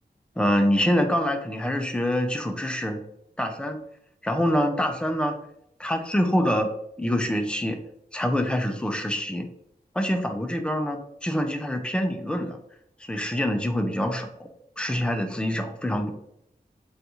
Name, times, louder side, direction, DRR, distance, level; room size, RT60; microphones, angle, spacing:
voice 1, 0.4-3.0 3.4-3.8 4.2-5.3 5.8-6.7 7.0-7.8 8.1-9.5 9.9-12.6 13.0-14.5 14.8-16.1, equal, 5° left, 5 dB, 0.4 m, -25 dB
3.9 x 2.4 x 2.8 m, 0.76 s
wide cardioid pair, 85°, 17 cm